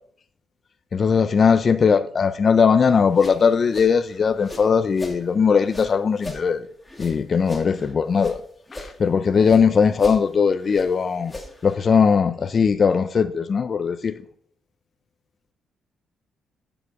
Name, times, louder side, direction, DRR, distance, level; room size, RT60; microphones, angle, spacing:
voice 1, 0.9-6.6 7.0-8.4 8.7-11.3 11.6-14.1, left 6 dB, 45° left, 0.5 m, -19 dB
sound 1, 2.9-5.2 5.6-8.4 8.7-9.7 9.9-11.7, left 1 dB, 15° left, 2.3 m, -38 dB
9.1 x 7.0 x 4.8 m
cardioid pair, 90°, 0 cm